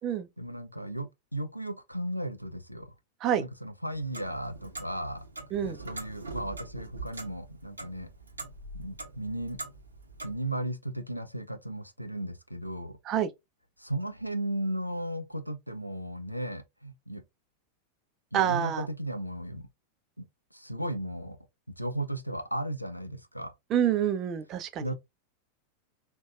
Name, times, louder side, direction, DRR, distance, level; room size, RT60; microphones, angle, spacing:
voice 1, 0.4-2.9 3.4-5.2 5.6-8.1 8.7-9.6 10.2-13.0 13.8-17.2 18.3-19.7 20.2-20.3 20.5-21.4 21.7-23.5 24.8-25.0, right 1 dB, 90° left, 0.4 m, -35 dB
Clock, 3.9-10.4, right 3 dB, 80° right, 0.6 m, -43 dB
voice 2, 18.3-18.9 23.7-24.9, right 9 dB, 35° right, 0.5 m, -27 dB
3.9 x 2.2 x 2.3 m
figure-of-eight pair, 90°, 0 cm